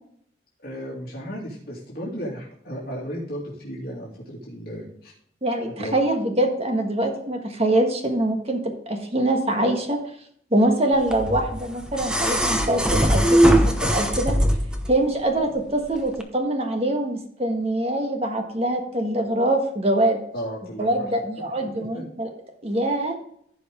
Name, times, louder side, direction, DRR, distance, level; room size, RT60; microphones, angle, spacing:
voice 1, 0.6-5.1 5.8-6.0 20.3-21.1 21.6-22.1, equal, 55° left, -5 dB, 2.7 m, -34 dB
voice 2, 5.4-10.0 10.5-14.3 14.9-20.2 20.8-22.3 22.6-23.1, right 1 dB, 35° right, 4 dB, 1.5 m, -24 dB
sound 1, 11.1-14.9 16.1-16.2, right 1 dB, 5° right, 0.8 m, -20 dB
15.0 x 5.3 x 3.7 m, 0.66 s
head